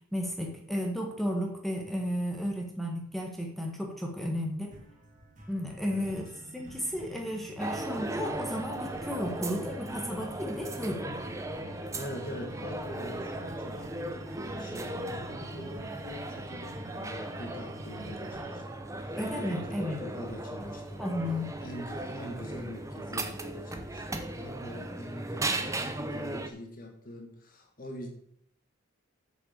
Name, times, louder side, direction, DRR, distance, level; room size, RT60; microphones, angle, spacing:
voice 1, 0.1-4.7 5.5-6.3 6.5-11.1 19.2-20.0 21.0-21.5, equal, ahead, 0 dB, 1.6 m, -33 dB
sound 1, 4.7-22.9, equal, 35° right, 2.3 m, -53 dB
sound 2, 6.0-18.6, right 1 dB, 70° right, 1.1 m, -50 dB
sound 3, 7.6-26.5, right 2 dB, 15° right, 0.8 m, -37 dB
voice 2, 11.9-14.2 14.5-21.1 21.6-28.1, equal, 40° left, 2 dB, 2.0 m, -44 dB
8.1 x 7.1 x 6.8 m, 0.69 s
head